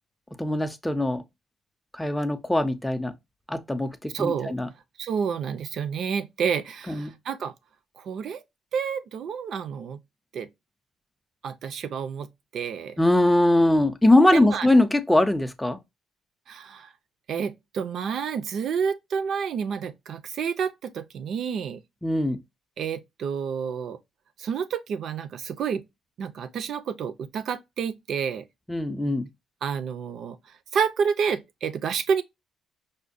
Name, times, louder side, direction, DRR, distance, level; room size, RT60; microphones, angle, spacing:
voice 1, 0.4-1.2 1.9-3.1 3.5-4.7 6.9-7.1 13.0-15.8 22.0-22.4 28.7-29.3, left 1 dB, 5° left, 0.5 m, -21 dB
voice 2, 4.1-4.5 5.0-7.5 8.0-8.4 8.7-10.0 10.3-10.5 11.4-12.3 12.5-13.0 14.3-14.7 16.5-16.9 17.3-21.8 22.8-24.0 24.4-25.8 26.2-28.4 29.6-30.4 30.7-32.2, right 6 dB, 65° right, 0.4 m, -29 dB
4.9 x 2.2 x 2.5 m
cardioid pair, 90°, 0 cm